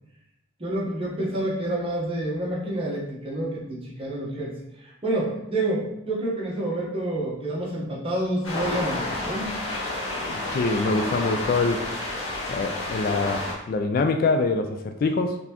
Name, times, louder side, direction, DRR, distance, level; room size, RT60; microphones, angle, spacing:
voice 1, 0.6-4.5 4.8-9.6, right 1 dB, 30° right, -5 dB, 1.1 m, -28 dB
sound 1, 8.4-13.5, left 2 dB, 85° left, 1.1 m, -30 dB
voice 2, 10.3-11.8 12.5-15.4, left 3 dB, 45° left, 6 dB, 0.3 m, -24 dB
4.1 x 3.4 x 2.9 m, 0.85 s
head